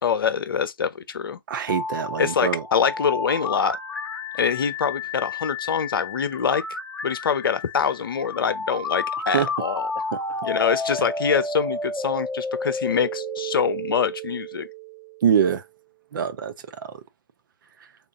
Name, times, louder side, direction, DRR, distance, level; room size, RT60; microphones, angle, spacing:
voice 1, 0.0-1.4 2.2-3.8 4.3-6.6 7.0-9.9 10.4-14.7, left 6 dB, 75° left, 0.7 m, -24 dB
voice 2, 1.5-2.6 9.3-9.5 10.3-10.4 15.2-15.6 16.1-16.5 16.8-16.9, right 8 dB, 65° right, 0.7 m, -23 dB
sound 1, 1.7-15.5, left 2 dB, 5° left, 0.9 m, -31 dB
3.6 x 2.5 x 3.5 m
hypercardioid pair, 125°, 12 cm